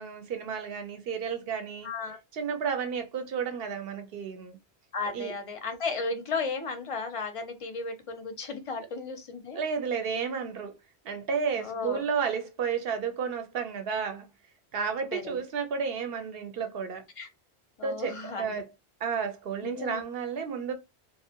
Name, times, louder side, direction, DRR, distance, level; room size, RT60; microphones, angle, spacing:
voice 1, 0.0-1.9 2.3-4.6 5.1-5.3 9.5-10.7 11.0-14.3 14.7-17.0 17.8-18.7 19.0-20.7, right 6 dB, 70° right, 0.8 m, -32 dB
voice 2, 1.8-2.2 4.9-9.6 11.6-12.0 14.8-15.4 17.2-17.3 17.8-18.6 19.6-20.0, left 4 dB, 45° left, 0.5 m, -35 dB
2.6 x 2.1 x 2.7 m
omnidirectional pair, 1.1 m